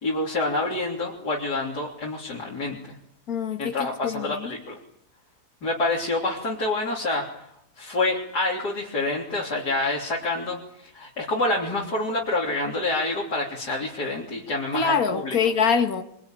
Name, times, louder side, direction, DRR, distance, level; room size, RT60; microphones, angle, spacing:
voice 1, 0.0-3.0 3.6-4.8 5.6-7.5 7.8-10.6 10.8-15.4, left 2 dB, 90° left, 3.9 m, -27 dB
voice 2, 3.3-4.5 14.7-16.0, left 6 dB, 65° left, 2.3 m, -24 dB
24.5 x 24.0 x 9.1 m
omnidirectional pair, 1.7 m